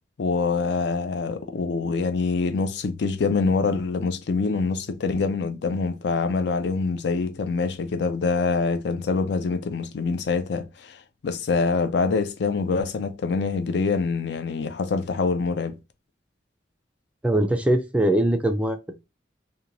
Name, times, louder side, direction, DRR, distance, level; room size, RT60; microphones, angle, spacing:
voice 1, 0.2-15.8, left 4 dB, 65° left, 0.4 m, -25 dB
voice 2, 17.2-18.8, right 1 dB, 5° right, 0.3 m, -21 dB
2.9 x 2.2 x 2.5 m
head